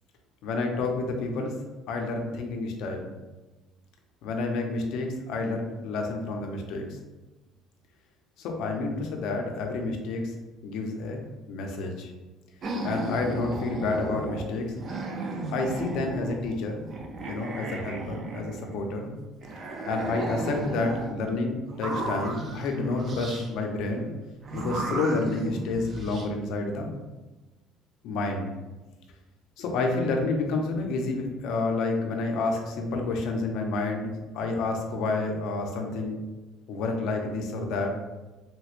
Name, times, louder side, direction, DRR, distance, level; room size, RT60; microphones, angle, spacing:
voice 1, 0.4-1.5 1.9-3.1 4.2-7.0 8.4-10.3 10.6-11.2 11.5-12.1 12.8-14.7 15.5-16.9 17.3-19.1 19.9-24.1 24.5-26.9 28.0-28.5 29.6-36.2 36.7-37.9, left 3 dB, 60° left, 2 dB, 0.6 m, -29 dB
sound 1, 12.6-14.5 14.8-16.5 16.9-18.9 19.4-21.1 21.7-23.5 24.4-26.3, right 2 dB, 30° right, 0.4 m, -35 dB
3.3 x 3.0 x 2.5 m, 1.1 s
cardioid pair, 170°, 0 cm